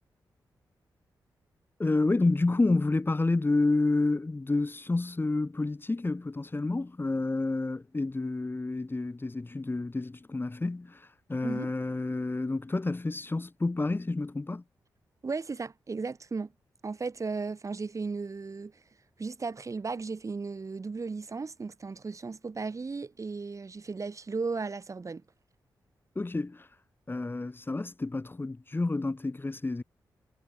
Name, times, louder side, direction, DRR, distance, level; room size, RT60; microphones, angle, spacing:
voice 1, 1.8-14.6 26.1-26.7 27.1-29.8, left 2 dB, 25° left, 1.6 m, -29 dB
voice 2, 15.2-16.5 16.8-18.7 19.2-25.2, right 4 dB, 40° right, 1.4 m, -35 dB
cardioid pair, 55°, 8 cm